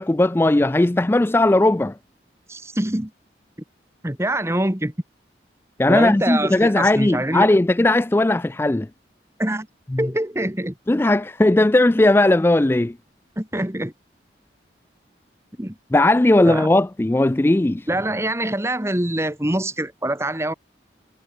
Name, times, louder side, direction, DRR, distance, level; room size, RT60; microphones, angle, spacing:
voice 1, 0.0-1.9 5.8-8.9 9.9-10.0 10.9-13.0 15.9-17.9, left 2 dB, 15° left, 0.3 m, -17 dB
voice 2, 2.5-3.1 4.0-4.9 5.9-7.5 9.4-9.7 10.0-10.8 13.4-13.9 15.6-15.7 16.4-16.7 17.9-20.5, right 1 dB, 15° right, 1.5 m, -24 dB
head